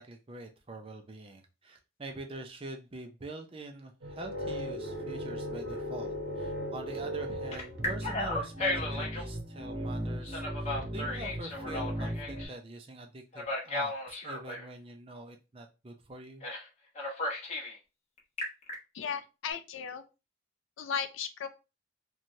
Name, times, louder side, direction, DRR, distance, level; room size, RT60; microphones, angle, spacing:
voice 1, 0.0-16.5, right 2 dB, 30° right, 4 dB, 0.5 m, -45 dB
sound 1, 4.0-12.5, equal, 65° right, 0.8 m, -37 dB
Telephone, 4.7-7.0 7.5-9.3 10.2-12.5 13.3-14.7 16.4-16.7 16.9-17.7 18.2-18.7, left 2 dB, 35° left, 0.8 m, -36 dB
voice 2, 18.9-20.0 20.8-21.5, left 7 dB, 80° left, 10 dB, 0.4 m, -35 dB
3.1 x 2.3 x 2.6 m, 0.29 s
head